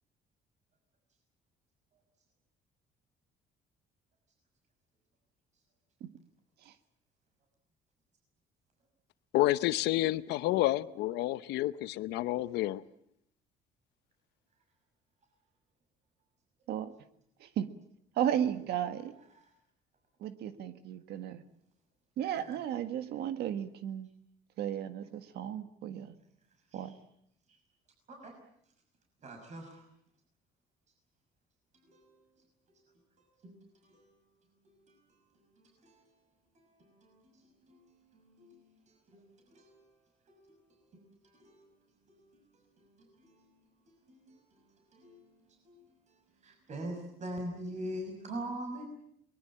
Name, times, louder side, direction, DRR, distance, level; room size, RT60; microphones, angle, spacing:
voice 1, 9.3-12.8, left 16 dB, 85° left, 0.9 m, -29 dB
voice 2, 18.2-19.1 20.2-21.4 22.2-24.1 24.6-26.1 26.7-26.9, right 10 dB, 75° right, 1.6 m, -34 dB
voice 3, 22.2-22.6 26.7-27.0 27.5-27.6 28.1-28.3 29.2-29.8 31.8-32.2 32.7-32.8 33.2-34.0 34.6-36.1 36.5-38.8 39.1-39.9 40.3-41.8 42.1-43.6 43.9-48.8, right 1 dB, 45° right, 6.0 m, -46 dB
23.0 x 21.0 x 8.8 m
cardioid pair, 110°, 17 cm